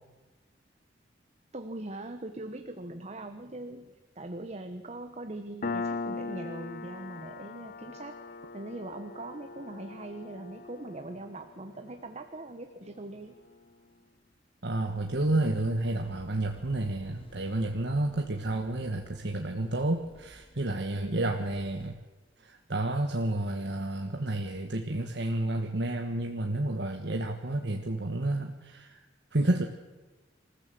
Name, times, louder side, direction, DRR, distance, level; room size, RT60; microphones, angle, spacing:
voice 1, 1.5-8.2 8.5-13.3 21.0-21.3, right 1 dB, 35° right, 7 dB, 1.2 m, -41 dB
Piano, 5.6-12.8, left 4 dB, 50° left, 0.9 m, -40 dB
voice 2, 14.6-22.0 22.4-29.0 29.3-29.6, right 2 dB, 65° right, 3 dB, 1.5 m, -30 dB
sound 1, 14.9-22.0, equal, 30° left, 1.9 m, -54 dB
26.5 x 15.0 x 7.8 m, 1.2 s
head